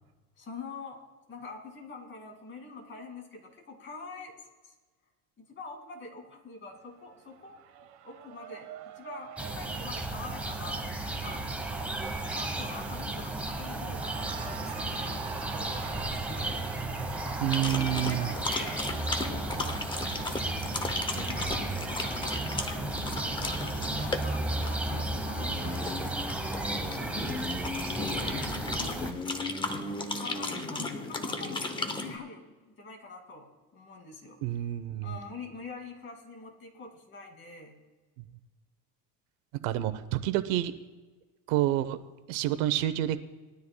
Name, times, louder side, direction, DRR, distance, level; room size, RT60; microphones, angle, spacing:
voice 1, 0.4-1.0 1.3-4.3 4.6-4.7 5.4-7.6 8.0-8.7 8.9-11.4 12.3-15.2 15.5-16.7 17.6-18.9 19.3-19.8 20.1-20.4 20.9-26.9 28.0-28.4 30.1-34.7 35.0-37.8, left 3 dB, 30° left, 2 dB, 2.3 m, -45 dB
Cheering, 6.7-21.9, right 10 dB, 70° right, 1.3 m, -47 dB
sound 1, 9.4-29.1, right 2 dB, 5° right, 1.0 m, -34 dB
voice 2, 17.4-18.3 34.4-35.2 39.6-40.7 41.5-42.0 42.3-43.2, right 13 dB, 90° right, 12 dB, 0.9 m, -28 dB
sound 2, 17.5-32.2, left 2 dB, 10° left, 0.7 m, -36 dB
20.0 x 12.5 x 2.2 m, 1.3 s
cardioid pair, 150°, 40 cm